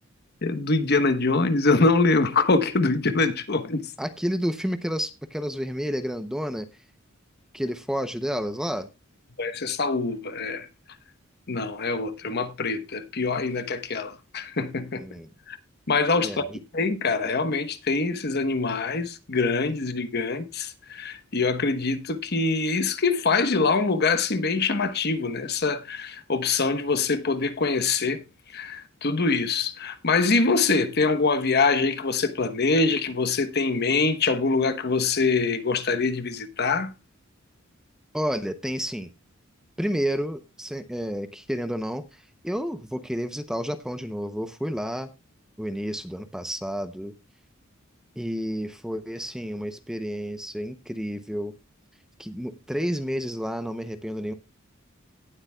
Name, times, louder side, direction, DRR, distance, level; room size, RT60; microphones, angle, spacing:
voice 1, 0.4-3.8 9.4-10.7 11.5-15.0 15.5-15.6 15.9-16.4 16.7-28.2 28.5-36.9, left 3 dB, 50° left, 1.1 m, -24 dB
voice 2, 4.0-6.7 7.5-8.9 15.0-15.3 16.2-16.6 38.1-39.1 39.8-45.1 45.6-47.1 48.2-51.6 52.2-54.3, equal, 5° right, 0.6 m, -30 dB
18.0 x 7.9 x 2.3 m
head